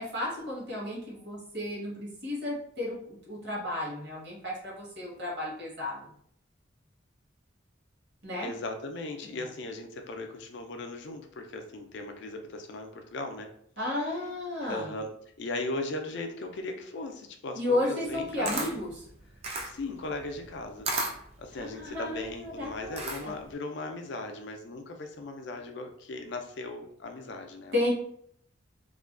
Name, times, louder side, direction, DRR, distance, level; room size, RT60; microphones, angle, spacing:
voice 1, 0.0-6.1 8.2-8.5 9.2-9.5 13.8-14.9 17.6-18.9 21.6-23.3 27.7-27.9, left 1 dB, 60° right, -3 dB, 0.9 m, -33 dB
voice 2, 8.4-13.5 14.6-15.1 15.4-18.8 19.6-20.9 21.4-27.9, left 2 dB, 60° left, 5 dB, 0.4 m, -38 dB
Camera, 18.1-23.5, right 2 dB, 30° right, 0.3 m, -35 dB
2.4 x 2.2 x 2.3 m, 0.66 s
head